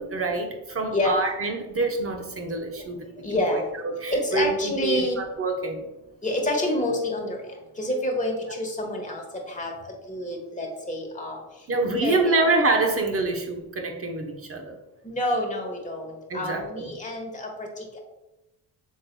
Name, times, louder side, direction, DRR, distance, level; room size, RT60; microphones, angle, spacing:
voice 1, 0.0-5.9 8.5-8.6 11.7-14.8 16.3-16.9, right 3 dB, 30° right, 4 dB, 0.9 m, -26 dB
voice 2, 3.2-3.6 4.1-5.2 6.2-7.4 7.8-9.2 9.5-9.7 10.1-11.4 11.8-12.5 15.0-18.0, left 1 dB, 15° left, 0 dB, 1.3 m, -28 dB
6.3 x 3.7 x 2.2 m, 1.0 s
supercardioid pair, 60°, 45 cm